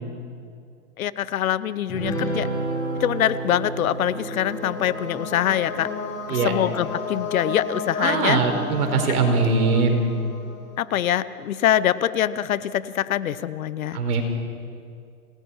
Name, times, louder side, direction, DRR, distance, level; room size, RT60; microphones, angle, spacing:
voice 1, 1.0-2.5 3.0-5.9 6.3-8.4 9.0-9.2 10.8-14.0, left 11 dB, 65° left, 16 dB, 1.0 m, -24 dB
sound 1, 1.9-7.6, right 2 dB, 10° left, 5.4 m, -32 dB
sound 2, 3.4-11.1, left 5 dB, 90° left, 6.9 m, -34 dB
voice 2, 8.0-10.0 13.9-14.2, right 4 dB, 70° right, 4 dB, 4.8 m, -21 dB
28.0 x 19.0 x 5.7 m, 2.4 s
hypercardioid pair, 145°, 46 cm